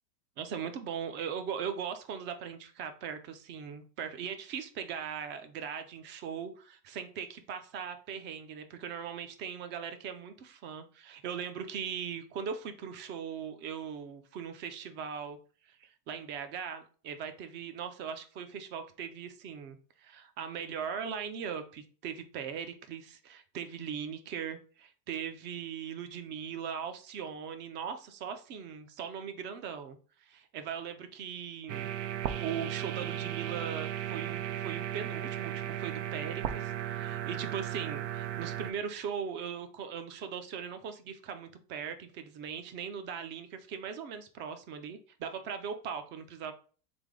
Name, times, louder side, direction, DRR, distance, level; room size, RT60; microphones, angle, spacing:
voice 1, 0.4-15.4 15.6-32.0 32.2-46.5, right 7 dB, 25° right, 8 dB, 0.4 m, -39 dB
sound 1, 31.7-38.7, right 11 dB, 90° right, 0.7 m, -36 dB
3.4 x 3.4 x 3.7 m, 0.39 s
hypercardioid pair, 120°, 48 cm